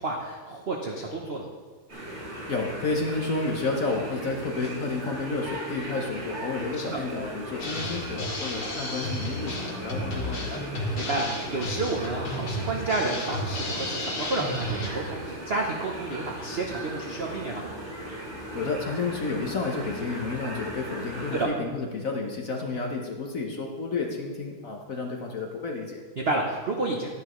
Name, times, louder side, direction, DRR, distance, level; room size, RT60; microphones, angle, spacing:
voice 1, 0.0-1.5 6.8-7.0 11.0-17.6 21.3-21.5 26.2-27.1, right 2 dB, 75° right, 0 dB, 0.5 m, -30 dB
sound 1, 1.9-21.4, right 1 dB, 30° right, 3.2 m, -38 dB
voice 2, 2.5-10.7 18.5-26.0, left 3 dB, 50° left, 1 dB, 1.0 m, -31 dB
Drum kit, 7.6-14.9, left 1 dB, 75° left, 2.8 m, -33 dB
11.5 x 10.5 x 3.1 m, 1.5 s
omnidirectional pair, 2.4 m